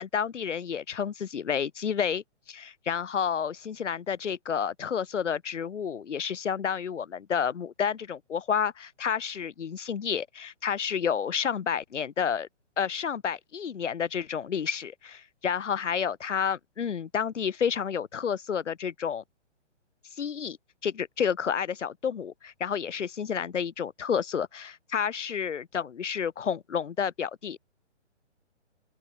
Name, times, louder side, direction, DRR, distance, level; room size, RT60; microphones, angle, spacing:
voice 1, 0.0-12.5 12.8-19.2 20.2-20.6 20.8-27.6, left 7 dB, 80° left, 1.2 m, -30 dB
open air
hypercardioid pair, 145°, 36 cm